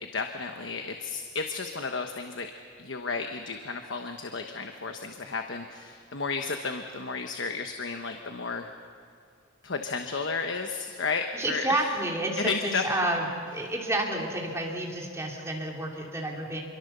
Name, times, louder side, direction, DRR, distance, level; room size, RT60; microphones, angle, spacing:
voice 1, 0.1-2.5 2.8-8.7 9.6-11.9 12.4-13.1, left 4 dB, 65° left, 5 dB, 1.1 m, -33 dB
voice 2, 11.3-16.6, right 1 dB, 15° right, -1 dB, 3.0 m, -30 dB
26.5 x 23.0 x 6.9 m, 2.3 s
head